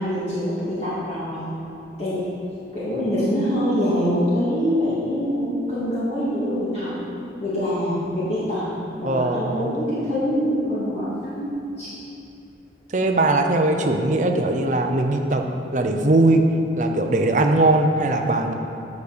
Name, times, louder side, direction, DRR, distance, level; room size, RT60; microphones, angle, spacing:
voice 1, 0.0-1.5 2.0-2.3 2.7-6.9 7.4-8.7 9.0-11.5 11.8-11.9 13.8-13.9, equal, 35° left, -11 dB, 2.1 m, -24 dB
voice 2, 9.0-9.7 12.9-15.4 15.7-16.5 16.8-18.5, right 2 dB, 45° right, 4 dB, 0.7 m, -20 dB
9.4 x 5.3 x 6.7 m, 2.7 s
head